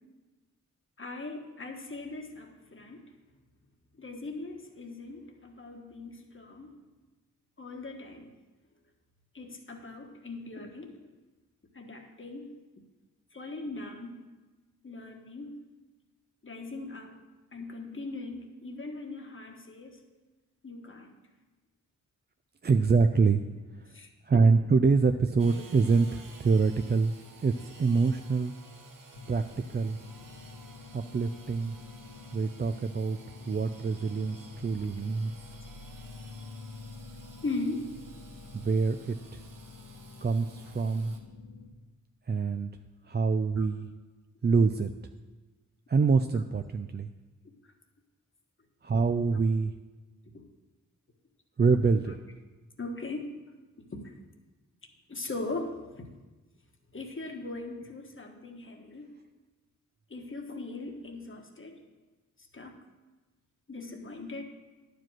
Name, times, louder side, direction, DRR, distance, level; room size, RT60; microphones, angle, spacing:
voice 1, 1.0-3.1 4.0-6.8 7.6-8.3 9.3-10.9 11.7-12.6 13.3-14.2 14.8-15.7 16.4-17.2 17.5-20.0 20.6-21.2 23.9-24.1 37.4-37.9 43.6-43.7 50.3-50.5 52.8-53.3 53.9-54.1 55.1-56.1 56.9-59.2 60.1-61.8 62.5-62.8 63.7-64.4, left 2 dB, 40° left, 3 dB, 1.4 m, -39 dB
voice 2, 22.6-23.4 24.3-27.1 27.4-28.5 29.3-29.4 29.7-30.0 30.9-31.8 32.3-33.2 33.5-35.3 38.5-39.4 40.2-41.1 42.3-42.7 43.1-43.9 44.4-44.9 45.9-47.1 48.8-49.7 51.6-52.2, right 4 dB, 35° right, 7 dB, 0.4 m, -25 dB
Engine / Sawing, 25.4-41.2, right 3 dB, 80° right, 1.3 m, -53 dB
sound 1, 29.1-41.7, left 4 dB, 80° left, 1.0 m, -48 dB
11.0 x 5.0 x 7.5 m, 1.2 s
wide cardioid pair, 80°, 32 cm